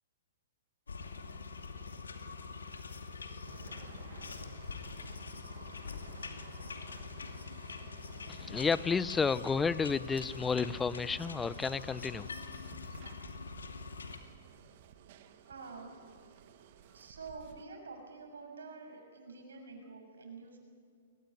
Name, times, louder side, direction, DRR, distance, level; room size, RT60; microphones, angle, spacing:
sound 1, 0.9-14.2, left 5 dB, 85° left, 2.5 m, -44 dB
sound 2, 3.4-17.6, right 9 dB, 50° right, 1.7 m, -56 dB
voice 1, 8.3-12.3, left 5 dB, 10° left, 18 dB, 0.6 m, -31 dB
voice 2, 15.5-16.0 16.9-20.6, right 4 dB, 80° right, 3 dB, 6.9 m, -48 dB
22.0 x 19.5 x 9.1 m, 2.2 s
hypercardioid pair, 125°, 0 cm